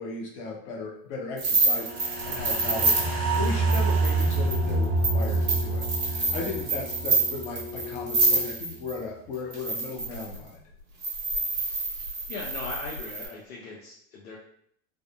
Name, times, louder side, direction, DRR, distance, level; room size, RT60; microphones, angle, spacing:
voice 1, 0.0-10.6, left 3 dB, 55° left, -1 dB, 0.9 m, -36 dB
sound 1, 1.4-9.0 9.5-10.4 11.0-13.3, right 3 dB, 85° right, 1.1 m, -27 dB
sound 2, 1.6-8.5, left 2 dB, 5° left, 0.5 m, -41 dB
sound 3, 1.8-8.2 8.5-8.6, right 2 dB, 60° right, 0.8 m, -27 dB
voice 2, 12.3-14.4, left 3 dB, 75° left, -3 dB, 0.7 m, -39 dB
3.5 x 2.0 x 2.3 m, 0.67 s
hypercardioid pair, 90°, 41 cm